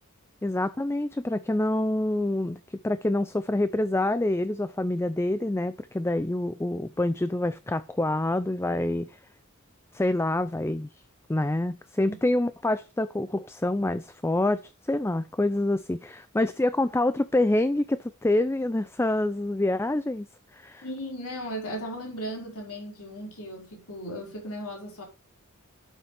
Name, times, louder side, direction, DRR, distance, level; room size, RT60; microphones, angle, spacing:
voice 1, 0.4-9.2 9.9-10.9 11.3-14.6 14.9-20.3 20.5-20.8, left 1 dB, 10° left, 0.4 m, -26 dB
voice 2, 20.8-25.0, equal, 75° left, 5.0 m, -36 dB
12.0 x 8.2 x 3.4 m
head